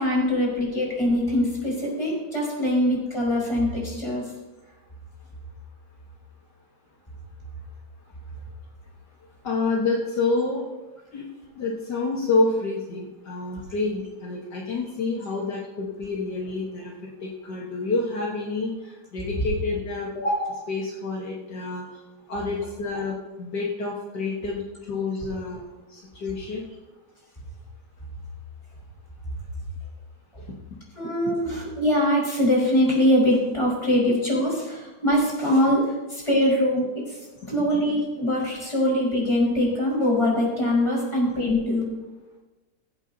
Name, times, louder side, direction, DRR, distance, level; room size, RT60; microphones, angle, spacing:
voice 1, 0.0-4.2 30.9-37.2 37.5-41.8, left 1 dB, 15° left, -5 dB, 4.9 m, -23 dB
voice 2, 9.4-10.6 11.1-11.3 11.6-16.9 17.2-21.9 22.3-25.6 25.9-26.6 30.4-30.5, left 3 dB, 65° left, -3 dB, 2.0 m, -28 dB
22.5 x 8.1 x 2.8 m, 1.1 s
omnidirectional pair, 2.0 m